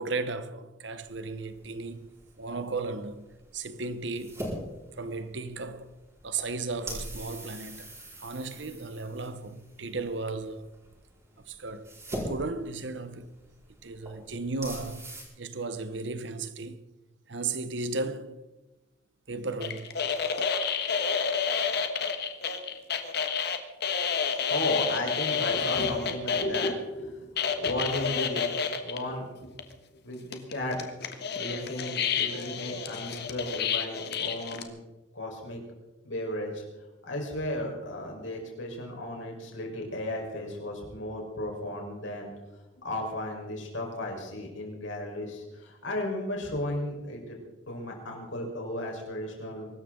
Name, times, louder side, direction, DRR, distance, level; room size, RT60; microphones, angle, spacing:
voice 1, 0.0-2.1 2.4-3.2 3.5-4.5 5.0-5.9 6.2-7.9 8.2-10.7 11.5-13.3 13.8-16.8 17.3-18.4 19.3-20.0, right 3 dB, 65° right, 1.0 m, -35 dB
sound 1, 1.0-15.2, equal, 15° right, 5.2 m, -43 dB
sound 2, 19.6-26.7 27.4-29.0 29.6-29.7 30.3-34.6, left 6 dB, 60° left, 1.5 m, -29 dB
voice 2, 24.4-29.5 29.9-30.8 31.4-34.7 35.1-35.6 36.0-36.6 37.0-42.3 42.8-47.4 47.7-49.7, left 1 dB, 80° left, 4.7 m, -34 dB
23.5 x 13.0 x 3.9 m
head